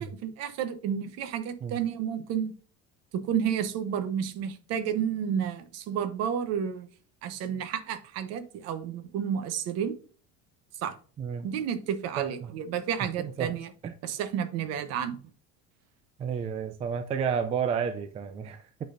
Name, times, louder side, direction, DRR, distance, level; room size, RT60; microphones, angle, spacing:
voice 1, 0.0-2.5 3.1-6.9 7.2-9.9 10.8-10.9 11.4-13.7 14.0-15.2, right 8 dB, 55° right, 0.9 m, -31 dB
voice 2, 11.2-11.5 12.2-12.5 13.2-13.6 13.8-13.9 16.2-18.8, right 7 dB, 20° right, 0.3 m, -31 dB
9.8 x 4.1 x 2.6 m
cardioid pair, 170°, 31 cm